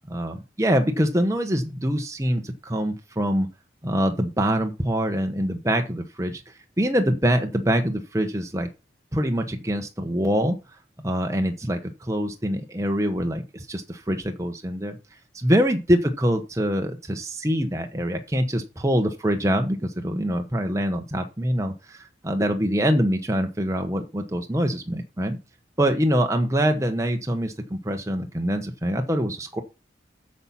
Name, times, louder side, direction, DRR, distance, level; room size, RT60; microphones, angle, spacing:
voice 1, 0.1-3.5 3.8-8.7 9.1-10.6 11.0-15.0 15.3-25.4 25.8-29.6, equal, 15° right, 4 dB, 1.0 m, -24 dB
8.8 x 5.8 x 5.7 m, 0.28 s
head